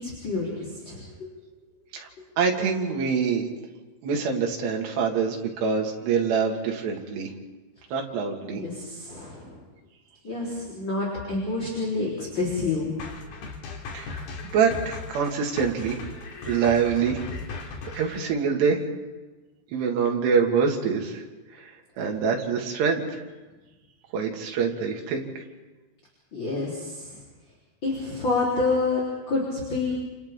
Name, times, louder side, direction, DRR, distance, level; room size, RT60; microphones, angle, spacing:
voice 1, 0.0-0.6 0.8-1.3 8.5-9.6 10.2-12.9 26.3-27.2 27.8-29.0 29.3-30.0, left 3 dB, 30° left, -5 dB, 4.5 m, -28 dB
voice 2, 2.4-3.5 4.0-7.3 7.9-8.6 13.9-14.2 14.5-16.0 16.4-17.2 17.6-18.8 19.7-21.2 21.5-21.7 22.0-23.2 24.1-25.4, right 6 dB, 85° right, 1 dB, 4.2 m, -25 dB
sound 1, 13.0-18.2, left 4 dB, 65° left, 4.2 m, -38 dB
29.5 x 28.0 x 3.8 m, 1.2 s
omnidirectional pair, 4.7 m